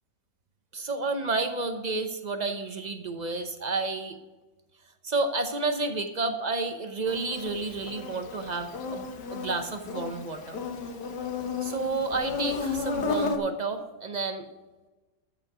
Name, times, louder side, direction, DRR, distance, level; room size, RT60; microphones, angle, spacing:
voice 1, 0.7-4.2 5.0-9.1 9.3-10.6 11.6-14.5, right 3 dB, 45° right, 7 dB, 0.5 m, -30 dB
Insect, 7.1-13.4, left 5 dB, 65° left, 1.7 m, -33 dB
13.5 x 6.6 x 5.0 m, 1.2 s
omnidirectional pair, 2.0 m